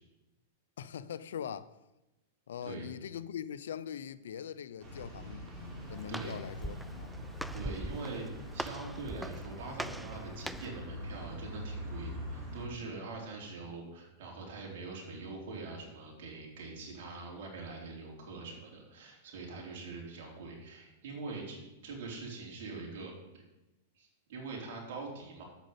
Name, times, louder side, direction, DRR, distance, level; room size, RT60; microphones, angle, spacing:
voice 1, 0.8-1.8 2.5-5.4 5.9-7.1 15.1-15.2, left 8 dB, 80° left, 0.6 m, -42 dB
sound 1, 4.8-12.7, equal, 25° right, 4.3 m, -43 dB
Walk footsteps, 5.5-10.9, right 1 dB, ahead, 0.3 m, -43 dB
voice 2, 6.1-6.4 7.5-23.4 23.9-25.4, right 3 dB, 65° right, 3.7 m, -43 dB
8.3 x 6.4 x 8.1 m
hypercardioid pair, 125°, 0 cm